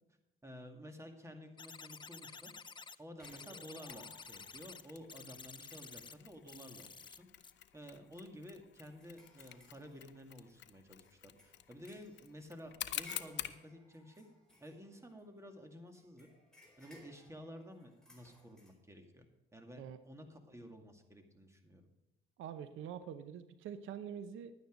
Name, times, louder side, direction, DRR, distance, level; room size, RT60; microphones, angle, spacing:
voice 1, 0.4-2.5 3.0-7.3 7.7-14.3 14.6-16.3 16.8-19.3 19.5-21.9, equal, 15° right, 4 dB, 2.1 m, -52 dB
sound 1, 1.6-3.0 3.2-4.8 5.1-6.1 6.5-7.2 7.4-7.5, left 5 dB, 25° left, 0.6 m, -51 dB
sound 2, 3.2-4.7 5.2-5.3 5.6-6.5 7.0-7.2 7.6-7.7 8.1-10.6 11.0-15.5 15.9-18.7, left 1 dB, 5° left, 4.6 m, -61 dB
Mechanisms, 3.9-13.6, left 11 dB, 65° left, 0.8 m, -49 dB
voice 2, 22.4-24.5, right 8 dB, 85° right, 11 dB, 0.8 m, -45 dB
11.5 x 9.4 x 5.1 m, 1.0 s
cardioid pair, 90°, 20 cm